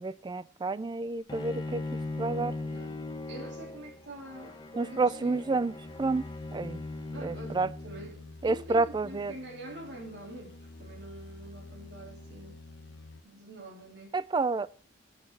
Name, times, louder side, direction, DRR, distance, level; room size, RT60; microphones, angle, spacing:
voice 1, 0.0-1.8 2.2-2.5 4.7-6.2 6.5-6.8 7.2-7.7 8.4-9.3 14.1-14.7, right 3 dB, 25° right, 0.4 m, -29 dB
Bowed string instrument, 1.3-8.4, left 2 dB, 25° left, 0.9 m, -39 dB
voice 2, 2.6-4.6 4.9-5.4 7.1-12.6 13.2-14.2, right 1 dB, 65° right, 2.8 m, -46 dB
sound 1, 5.8-13.2, left 2 dB, 65° left, 0.9 m, -49 dB
8.6 x 6.5 x 5.9 m
head